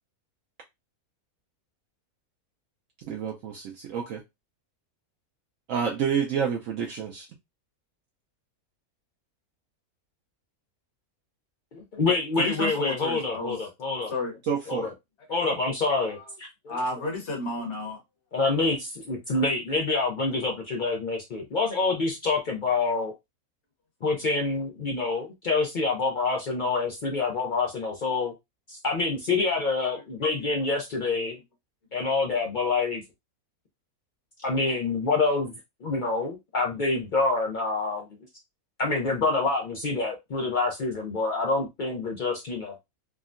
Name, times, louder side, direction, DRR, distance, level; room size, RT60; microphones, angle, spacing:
voice 1, 3.0-4.2 5.7-7.3 14.5-14.9, right 7 dB, 70° right, 0.9 m, -29 dB
voice 2, 11.7-14.1 14.7-14.9 15.3-16.7 18.3-23.1 24.0-28.3 28.7-31.4 31.9-33.0 34.4-35.5 35.8-38.1 38.8-42.7, left 3 dB, 70° left, 0.4 m, -27 dB
voice 3, 12.4-13.6 14.1-14.3 15.3-15.4 16.0-16.3 16.7-18.0 29.9-30.5 31.9-32.0, left 2 dB, 55° left, 1.2 m, -33 dB
3.5 x 2.1 x 2.4 m
omnidirectional pair, 1.6 m